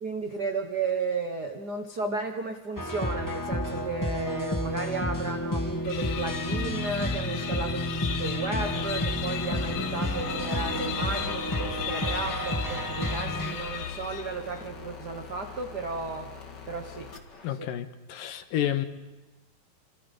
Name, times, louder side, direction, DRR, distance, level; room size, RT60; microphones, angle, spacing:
voice 1, 0.0-16.3 16.7-17.1 17.5-17.7, right 3 dB, 80° right, 5 dB, 0.9 m, -33 dB
sound 1, 2.7-13.5, equal, 20° left, 0.4 m, -31 dB
sound 2, 5.8-14.5, left 8 dB, 65° left, 2.2 m, -35 dB
sound 3, 8.6-17.5, left 5 dB, 35° left, 2.1 m, -44 dB
voice 2, 17.4-18.9, left 11 dB, 80° left, 9 dB, 2.9 m, -30 dB
29.5 x 27.0 x 5.4 m, 1.1 s
omnidirectional pair, 4.0 m